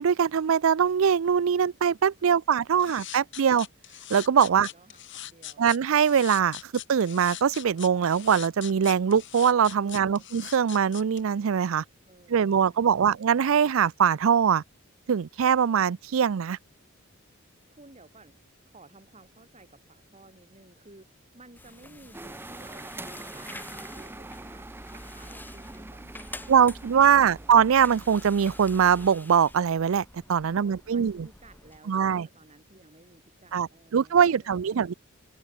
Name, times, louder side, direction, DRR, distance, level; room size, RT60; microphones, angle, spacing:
voice 1, 0.0-3.7 4.1-4.7 5.6-6.6 6.9-11.8 12.3-14.6 15.1-16.6 26.5-31.3 31.9-32.3 33.5-34.9, right 7 dB, 70° right, 0.4 m, -22 dB
sound 1, 2.8-11.2, left 13 dB, 60° left, 3.5 m, -41 dB
voice 2, 4.4-5.7 9.8-10.3 12.0-13.1 17.7-27.6 30.4-34.9, right 2 dB, 30° right, 3.1 m, -55 dB
sound 2, 21.6-31.8, left 2 dB, 10° left, 2.9 m, -48 dB
sound 3, 22.1-29.1, right 2 dB, 10° right, 0.5 m, -43 dB
head